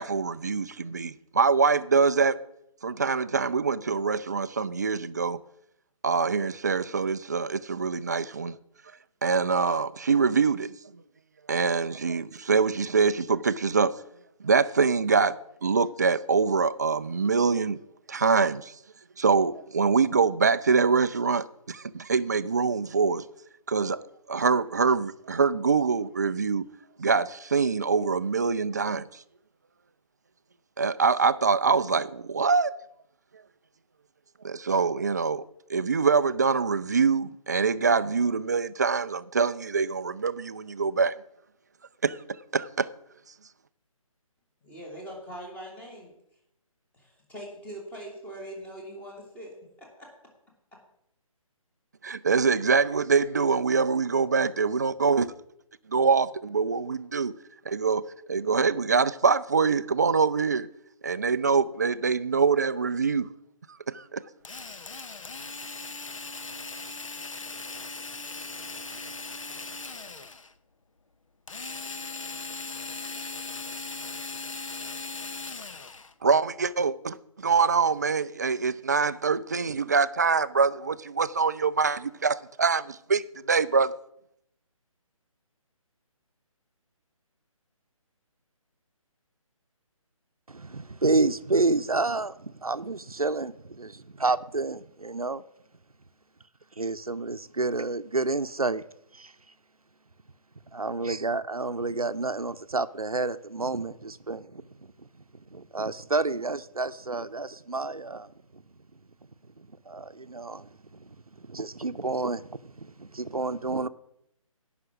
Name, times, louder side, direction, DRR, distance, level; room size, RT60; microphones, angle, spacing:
voice 1, 0.0-2.4 2.8-5.4 6.0-8.6 9.2-10.7 11.5-14.0 14.4-17.8 18.1-18.7 19.2-23.2 23.7-26.7 27.0-29.2 30.8-32.7 34.4-35.4 35.7-41.1 42.0-42.2 42.5-42.9 52.0-55.3 55.9-57.3 57.7-58.0 58.3-60.7 61.0-63.3 63.9-64.2 76.2-83.9, right 5 dB, 30° right, 0.3 m, -24 dB
voice 2, 44.6-46.2 46.9-50.1 50.7-50.8, right 1 dB, 10° left, 2.2 m, -42 dB
Drill, 64.4-70.5 71.5-76.1, left 3 dB, 65° left, 0.9 m, -38 dB
voice 3, 90.5-95.4 96.8-98.8 99.1-99.3 100.7-108.6 109.6-113.9, right 3 dB, 85° right, 0.7 m, -30 dB
17.0 x 5.9 x 6.1 m
figure-of-eight pair, 145°, 18 cm